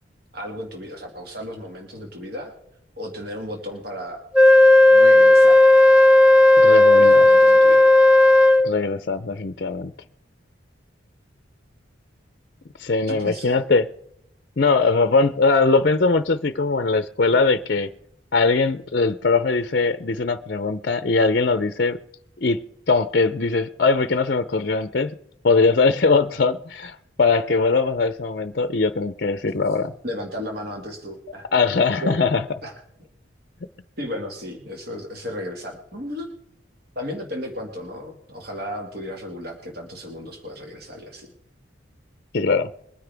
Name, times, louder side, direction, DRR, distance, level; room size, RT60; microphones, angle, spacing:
voice 1, 0.3-2.5 3.0-4.2 4.9-5.6 7.0-7.9 13.1-13.7 30.0-31.5 32.0-32.2 32.6-32.7 34.0-36.3 37.0-41.3, equal, 50° right, 1 dB, 2.0 m, -34 dB
Wind instrument woodwind instrument, 4.3-8.7, left 1 dB, 5° right, 0.5 m, -12 dB
voice 2, 6.6-7.2 8.6-9.9 12.8-13.9 14.6-17.9 18.3-22.0 22.4-22.6 22.9-25.2 25.4-29.9 31.5-32.4 42.3-42.7, left 4 dB, 50° left, 10 dB, 0.6 m, -21 dB
22.0 x 9.7 x 3.4 m, 0.78 s
head